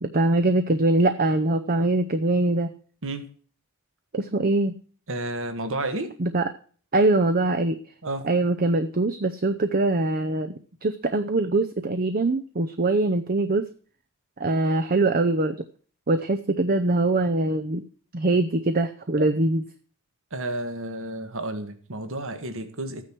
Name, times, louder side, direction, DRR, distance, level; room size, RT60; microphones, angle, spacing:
voice 1, 0.0-2.7 4.1-4.7 6.2-6.5 6.9-7.8 8.2-10.5 10.8-13.7 14.4-15.6 16.1-17.8 18.1-19.6, right 2 dB, 40° right, 8 dB, 0.7 m, -23 dB
voice 2, 5.1-6.1 8.0-8.3 20.3-23.1, right 2 dB, 60° right, 9 dB, 1.6 m, -31 dB
13.5 x 9.4 x 4.6 m, 0.43 s
head